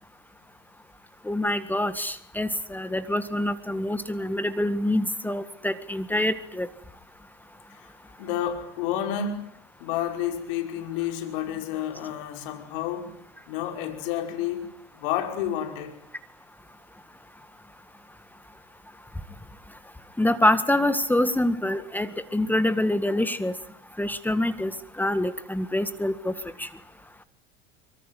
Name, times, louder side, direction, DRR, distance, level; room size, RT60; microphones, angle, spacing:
voice 1, 1.2-6.7 20.2-23.6 24.0-26.7, left 1 dB, 5° left, 1.8 m, -26 dB
voice 2, 8.2-9.4 9.8-13.2 13.5-14.7 14.9-16.0, left 10 dB, 70° left, 5.7 m, -30 dB
25.0 x 24.0 x 9.4 m
hypercardioid pair, 95°, 29 cm